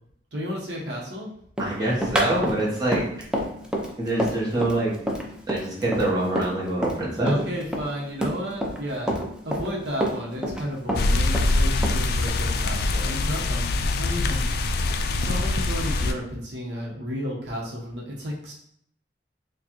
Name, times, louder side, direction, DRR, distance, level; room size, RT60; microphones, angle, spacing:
voice 1, 0.3-1.3 2.9-3.0 7.2-14.4 15.2-18.5, equal, 75° right, -3 dB, 0.9 m, -33 dB
Run, 1.6-7.0 7.3-8.8 9.1-10.6 10.9-12.3, equal, 5° right, 0.5 m, -27 dB
voice 2, 1.6-3.0 4.0-4.9 5.5-7.3, right 1 dB, 20° right, -6 dB, 1.0 m, -25 dB
sound 1, 10.9-16.1, left 2 dB, 60° left, 0.3 m, -24 dB
4.4 x 2.3 x 2.9 m, 0.69 s
head